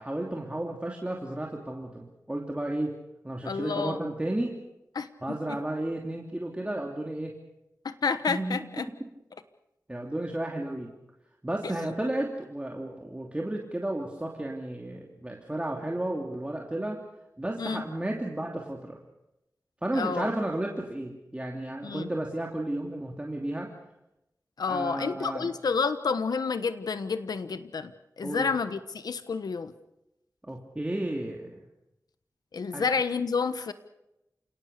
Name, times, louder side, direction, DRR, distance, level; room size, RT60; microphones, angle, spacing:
voice 1, 0.0-2.9 3.2-4.6 5.2-7.3 8.3-8.6 9.9-10.9 11.4-17.0 17.4-19.0 19.8-23.7 24.7-25.5 28.2-28.5 30.4-31.6 32.7-32.8, right 1 dB, 20° right, 0 dB, 2.9 m, -33 dB
voice 2, 3.4-4.0 4.9-5.4 7.8-8.9 11.6-11.7 17.6-17.8 19.9-20.3 21.8-22.1 24.6-29.7 32.5-33.7, left 5 dB, 90° left, 11 dB, 1.2 m, -30 dB
28.5 x 18.0 x 6.8 m, 0.90 s
wide cardioid pair, 60°, 7 cm